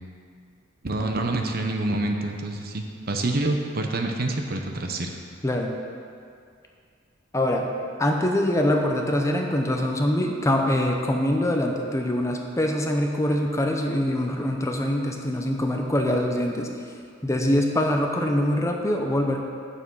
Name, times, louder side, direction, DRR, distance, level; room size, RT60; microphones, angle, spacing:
voice 1, 0.8-5.2, right 2 dB, 50° right, 3 dB, 0.8 m, -27 dB
voice 2, 5.4-5.8 7.3-7.7 8.0-16.7 17.2-19.4, left 1 dB, 15° left, 2 dB, 0.7 m, -24 dB
8.8 x 7.0 x 5.5 m, 2.3 s
head